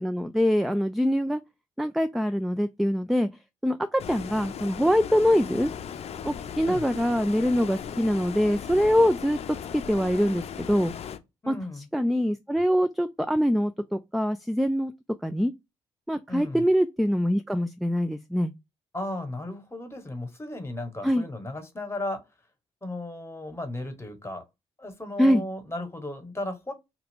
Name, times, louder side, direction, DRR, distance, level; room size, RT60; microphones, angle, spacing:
voice 1, 0.0-1.4 1.8-3.3 3.6-5.7 6.2-9.4 9.7-10.9 11.5-11.6 11.9-14.9 15.2-15.5 16.1-18.5 21.0-21.2 25.2-25.4, equal, ahead, 0.3 m, -24 dB
Stream, 4.0-11.2, left 8 dB, 45° left, 0.6 m, -37 dB
voice 2, 11.4-11.9 16.3-16.6 18.9-22.3 22.8-24.4 24.8-26.7, left 2 dB, 15° left, 1.2 m, -35 dB
2.5 x 2.3 x 3.4 m
hypercardioid pair, 45°, 15 cm